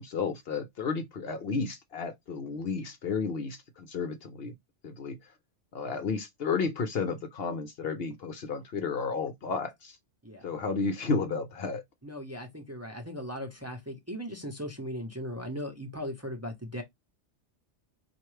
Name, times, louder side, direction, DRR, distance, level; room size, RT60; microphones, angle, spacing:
voice 1, 0.0-4.5 4.8-5.3 5.7-10.0 10.4-11.8, left 4 dB, 60° left, 0.8 m, -32 dB
voice 2, 12.0-16.8, equal, 15° right, 0.8 m, -38 dB
4.4 x 2.5 x 3.1 m
omnidirectional pair, 1.2 m